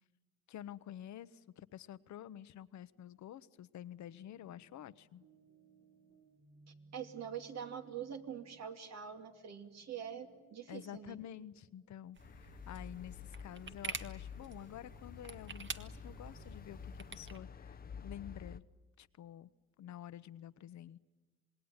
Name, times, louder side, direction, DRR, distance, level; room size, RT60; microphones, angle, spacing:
voice 1, 0.5-5.2 10.7-18.6 19.0-19.5 19.8-21.0, left 11 dB, 70° left, 1.0 m, -49 dB
sound 1, 3.8-13.7, right 3 dB, 75° right, 3.8 m, -66 dB
voice 2, 6.9-11.2, right 8 dB, 60° right, 2.7 m, -44 dB
sound 2, 12.2-18.6, left 6 dB, 30° left, 0.8 m, -50 dB
sound 3, 12.2-17.4, right 5 dB, 40° right, 1.6 m, -48 dB
27.5 x 20.0 x 9.7 m
cardioid pair, 90°, 30 cm